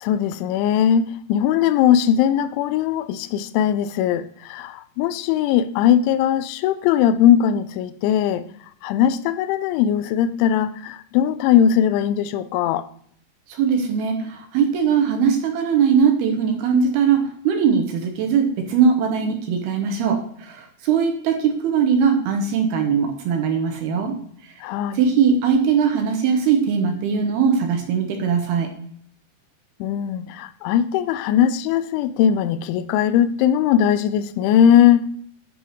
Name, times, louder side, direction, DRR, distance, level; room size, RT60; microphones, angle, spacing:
voice 1, 0.0-8.4 8.8-12.9 24.6-25.0 29.8-35.1, left 9 dB, 90° left, 3.0 m, -19 dB
voice 2, 13.5-24.1 24.9-28.7, right 6 dB, 70° right, 2.6 m, -20 dB
10.5 x 4.7 x 5.0 m
omnidirectional pair, 5.3 m